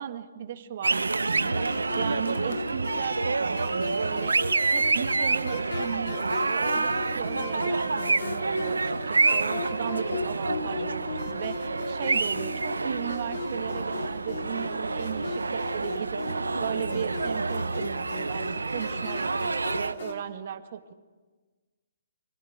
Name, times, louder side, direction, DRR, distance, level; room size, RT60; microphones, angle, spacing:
voice 1, 0.0-20.9, right 9 dB, 50° right, 8 dB, 1.6 m, -36 dB
sound 1, 0.8-19.9, right 3 dB, 90° right, 0.8 m, -28 dB
sound 2, 1.3-20.1, left 4 dB, 65° left, 5.5 m, -38 dB
25.0 x 16.5 x 9.5 m, 1.3 s
hypercardioid pair, 140°, 0 cm